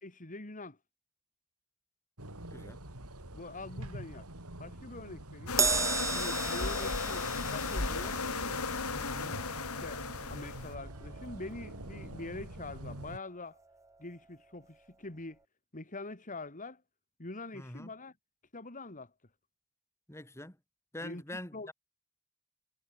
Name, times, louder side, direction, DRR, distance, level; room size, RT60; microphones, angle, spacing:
voice 1, 0.0-0.8 3.3-4.3 4.6-5.6 6.1-8.2 9.8-13.6 14.0-15.4 15.7-16.8 17.2-18.1 18.5-19.1 21.0-21.2 21.5-21.7, left 2 dB, 35° left, 2.4 m, -44 dB
sound 1, 2.2-13.2, right 1 dB, 80° right, 4.6 m, -45 dB
sound 2, 5.5-10.7, left 4 dB, 70° left, 2.2 m, -35 dB
Crash cymbal, 5.6-12.2 12.5-12.8 13.8-13.9, right 5 dB, 15° right, 0.8 m, -36 dB
voice 2, 8.9-9.3 17.5-17.9 20.1-20.6 20.9-21.7, left 1 dB, 10° left, 2.8 m, -44 dB
head